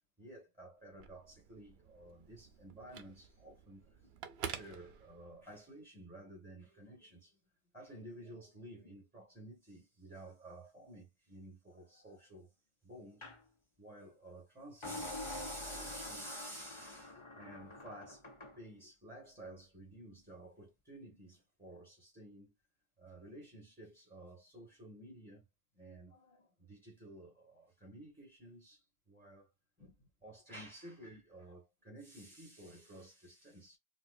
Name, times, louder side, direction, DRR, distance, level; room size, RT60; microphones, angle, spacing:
voice 1, 0.2-7.4 7.7-12.5 12.8-13.3 13.8-18.2 18.6-22.5 23.0-25.4 25.7-29.5 29.8-33.8, right 1 dB, 10° right, 1.6 m, -52 dB
Telephone, 0.8-5.6, right 7 dB, 80° right, 0.9 m, -49 dB
sound 1, 13.2-13.4 14.8-18.6, left 2 dB, 30° left, 0.9 m, -46 dB
4.4 x 2.4 x 2.5 m
omnidirectional pair, 1.1 m